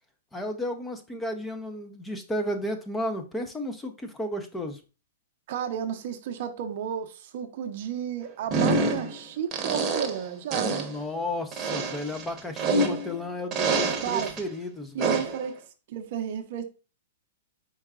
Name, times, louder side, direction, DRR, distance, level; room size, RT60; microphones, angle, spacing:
voice 1, 0.3-4.8 10.7-15.2, left 1 dB, 10° left, 0.6 m, -33 dB
voice 2, 5.5-10.9 14.0-14.3 14.9-15.6 15.9-16.6, right 9 dB, 55° right, 0.7 m, -32 dB
sound 1, 8.5-9.2 9.5-10.2 10.5-10.9 11.5-13.2 13.5-14.4 15.0-15.4, right 3 dB, 25° right, 1.0 m, -26 dB
4.7 x 4.4 x 2.3 m
hypercardioid pair, 135°, 0 cm